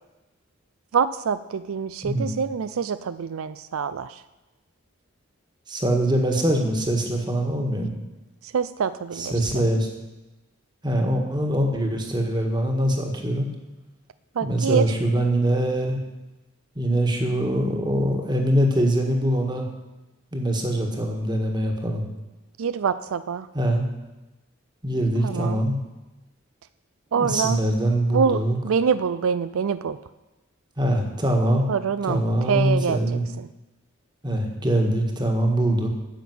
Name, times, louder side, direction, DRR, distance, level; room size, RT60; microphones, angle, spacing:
voice 1, 0.9-4.1 8.5-9.3 14.4-14.8 22.6-23.5 25.2-25.6 27.1-27.6 28.1-30.0 31.7-32.2 32.5-33.0, right 6 dB, 80° right, 14 dB, 0.4 m, -25 dB
voice 2, 2.0-2.4 5.7-8.0 9.1-9.9 10.8-13.5 14.4-16.0 16.7-19.6 20.3-22.1 23.5-23.8 24.8-25.8 27.1-28.6 30.8-31.7 32.0-33.2 34.2-35.9, right 1 dB, 20° right, 3 dB, 1.6 m, -23 dB
10.5 x 7.1 x 9.4 m, 1.1 s
head